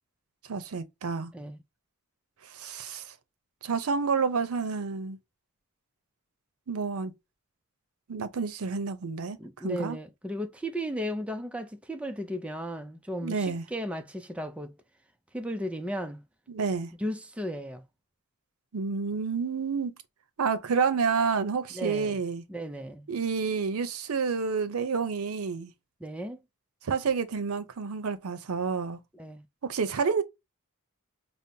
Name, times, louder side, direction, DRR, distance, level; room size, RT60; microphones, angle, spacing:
voice 1, 0.5-1.3 2.4-3.1 3.6-5.2 6.7-7.1 8.1-10.0 13.2-13.7 16.5-16.9 18.7-19.9 20.4-22.4 23.1-25.7 26.8-29.0 29.6-30.2, right 5 dB, 90° right, 0.6 m, -29 dB
voice 2, 9.4-14.8 15.3-16.2 17.0-17.8 21.7-22.2 22.5-23.1 26.0-26.4 29.1-29.5, equal, 5° right, 0.3 m, -35 dB
5.3 x 2.0 x 2.7 m
head